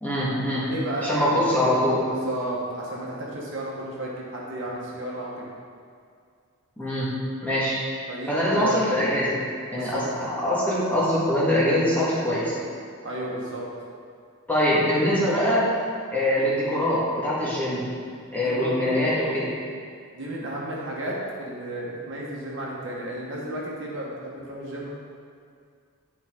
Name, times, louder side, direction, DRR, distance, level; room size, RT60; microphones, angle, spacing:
voice 1, 0.0-0.7 1.0-2.0 6.8-7.1 7.4-7.8 8.3-9.4 9.7-12.5 14.5-15.7 16.1-17.8 18.3-19.5, left 1 dB, 5° left, -9 dB, 1.5 m, -23 dB
voice 2, 0.7-1.5 2.1-5.5 8.1-8.8 9.7-10.1 13.0-13.6 18.1-19.0 20.1-24.9, right 1 dB, 55° right, -4 dB, 1.3 m, -33 dB
10.0 x 4.7 x 3.7 m, 2.2 s
head